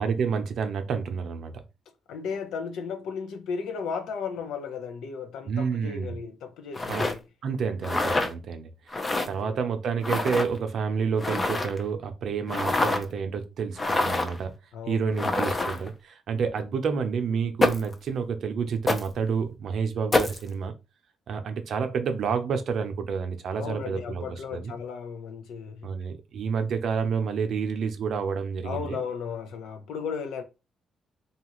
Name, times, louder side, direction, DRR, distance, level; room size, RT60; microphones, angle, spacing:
voice 1, 0.0-1.6 5.4-6.2 6.9-7.0 7.4-9.0 9.3-14.5 14.9-20.7 21.3-24.2 24.5-24.7 25.8-29.0, right 6 dB, 65° right, 0.6 m, -29 dB
voice 2, 2.1-7.2 9.2-9.6 12.5-13.0 14.7-15.3 23.6-25.9 28.6-30.4, left 6 dB, 85° left, 0.6 m, -35 dB
sound 1, 6.7-7.1 7.8-8.3 8.9-9.3 10.0-10.5 11.2-11.8 12.5-13.0 13.8-14.4 15.2-15.9 17.6-17.9 18.9-19.1 20.1-20.4, left 2 dB, 25° left, 0.5 m, -26 dB
2.8 x 2.4 x 2.9 m
cardioid pair, 90°, 0 cm